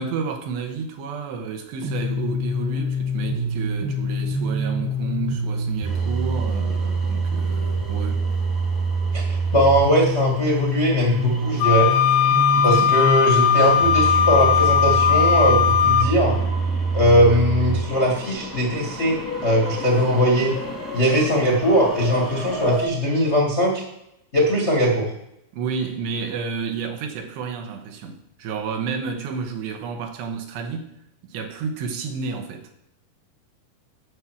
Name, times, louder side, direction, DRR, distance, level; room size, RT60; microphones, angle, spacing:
voice 1, 0.0-8.2 12.5-12.8 17.2-17.4 25.5-30.9 31.2-32.7, right 5 dB, 90° right, 3.4 m, -31 dB
sound 1, 1.8-17.8, right 2 dB, 65° right, 2.9 m, -25 dB
sound 2, 5.8-22.8, equal, 10° left, 0.9 m, -35 dB
voice 2, 9.1-11.9 12.6-16.4 16.9-20.5 20.9-23.8 24.3-25.1, equal, 45° left, 0.8 m, -20 dB
Wind instrument woodwind instrument, 11.6-16.1, left 9 dB, 85° left, 2.7 m, -18 dB
10.5 x 7.4 x 6.3 m
omnidirectional pair, 4.9 m